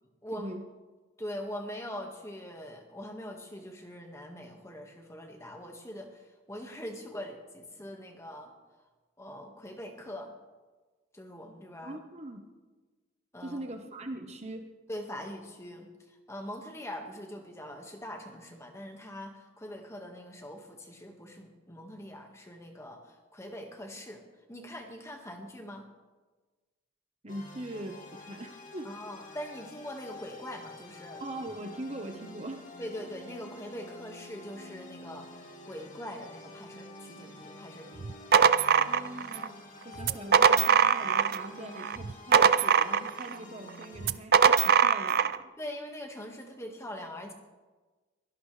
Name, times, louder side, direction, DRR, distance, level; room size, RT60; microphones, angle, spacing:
voice 1, 0.3-0.6 11.8-12.5 13.4-14.7 27.2-28.9 31.2-32.6 38.8-39.5 39.8-45.5, right 1 dB, 30° right, 4 dB, 1.2 m, -41 dB
voice 2, 1.2-8.5 9.2-10.4 11.1-12.0 13.3-13.6 14.9-24.2 24.5-25.9 28.8-31.2 32.8-35.3 35.6-38.1 40.1-40.2 45.6-47.3, equal, 15° left, 3 dB, 1.7 m, -42 dB
sound 1, 27.3-44.1, left 2 dB, 40° left, 2.8 m, -48 dB
sound 2, 38.0-39.5 40.0-41.5 41.8-43.3 44.0-45.4, right 6 dB, 50° right, 0.5 m, -22 dB
23.5 x 17.5 x 3.4 m, 1.3 s
head